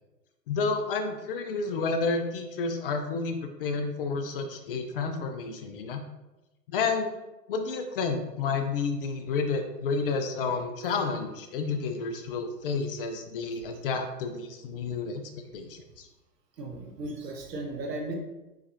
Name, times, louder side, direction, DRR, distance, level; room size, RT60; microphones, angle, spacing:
voice 1, 0.5-6.0 6.7-7.1 7.5-16.1, left 4 dB, 40° left, 6 dB, 0.5 m, -30 dB
voice 2, 16.6-18.2, right 2 dB, 80° right, 3 dB, 1.1 m, -36 dB
4.8 x 4.1 x 2.6 m, 1.0 s
hypercardioid pair, 115°, 48 cm